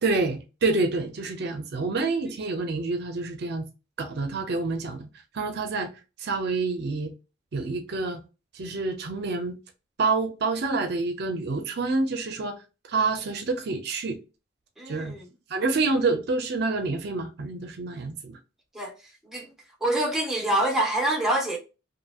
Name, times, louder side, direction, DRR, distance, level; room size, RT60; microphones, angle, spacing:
voice 1, 0.0-3.6 4.0-5.1 5.3-5.9 6.2-7.1 7.5-8.2 8.6-9.6 10.0-12.6 12.9-14.2 14.9-15.1 15.5-18.4, right 3 dB, 55° right, 0.5 m, -27 dB
voice 2, 14.8-15.3 18.7-18.9 19.2-19.5 19.8-21.6, right 1 dB, ahead, 0.7 m, -26 dB
2.7 x 2.6 x 2.3 m
head